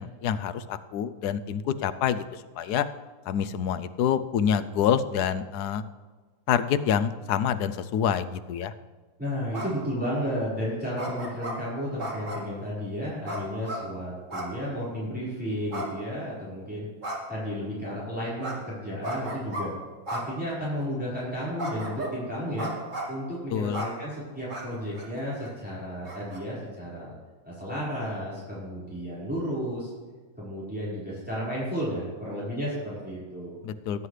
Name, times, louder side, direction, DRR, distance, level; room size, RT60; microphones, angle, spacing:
voice 1, 0.0-2.9 3.3-5.8 6.5-8.7 23.5-23.8 33.6-34.1, left 8 dB, 80° left, 12 dB, 1.2 m, -27 dB
voice 2, 9.2-16.9 17.3-19.7 20.1-22.7 23.1-27.1 27.4-29.9 30.4-33.6, equal, 5° right, -9 dB, 4.7 m, -33 dB
sound 1, 9.5-9.9 11.0-11.6 12.0-12.5 13.2-13.8 14.3-14.6 14.8-14.9 15.7-16.4 17.0-17.4 18.4-18.6 19.0-19.6 20.1-20.2 20.8-20.9 21.6-22.2 22.6-23.2 23.7-23.9 24.5-24.6 25.0-25.1 25.4-25.5 26.1-26.4, right 1 dB, 50° right, 2.6 m, -34 dB
19.5 x 9.5 x 3.3 m, 1.4 s
omnidirectional pair, 1.7 m